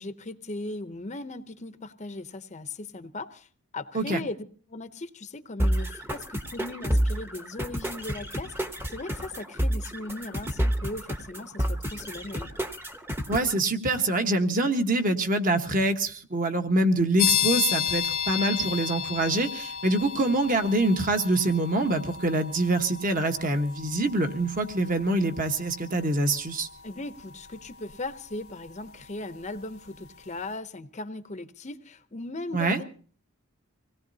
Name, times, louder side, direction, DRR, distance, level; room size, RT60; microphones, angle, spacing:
voice 1, 0.0-8.5 8.9-12.5 26.8-32.8, left 2 dB, 30° left, 10 dB, 0.7 m, -38 dB
sound 1, 5.6-13.6, equal, 10° right, 0.9 m, -29 dB
voice 2, 13.3-26.7 32.5-32.8, right 2 dB, 40° right, 7 dB, 1.2 m, -25 dB
sound 2, 17.2-29.7, left 8 dB, 65° left, 0.7 m, -33 dB
25.0 x 18.0 x 2.7 m, 0.43 s
head